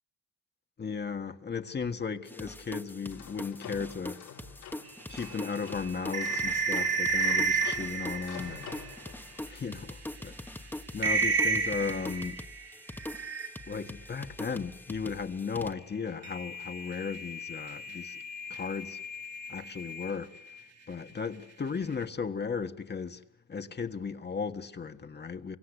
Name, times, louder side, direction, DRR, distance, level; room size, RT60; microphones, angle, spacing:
voice 1, 0.8-4.3 5.1-8.7 9.4-10.3 10.9-12.5 13.7-18.2 18.5-19.1 19.5-20.4 20.9-25.6, left 5 dB, 35° left, 1.6 m, -36 dB
sound 1, 2.3-15.7, left 1 dB, 5° left, 1.3 m, -43 dB
sound 2, 2.9-9.6, left 8 dB, 90° left, 6.0 m, -48 dB
sound 3, 5.1-9.5 10.0-10.1 10.5-10.6 11.0-13.9 16.2-20.6, right 3 dB, 55° right, 2.5 m, -32 dB
28.0 x 24.5 x 8.2 m
cardioid pair, 90°, 30 cm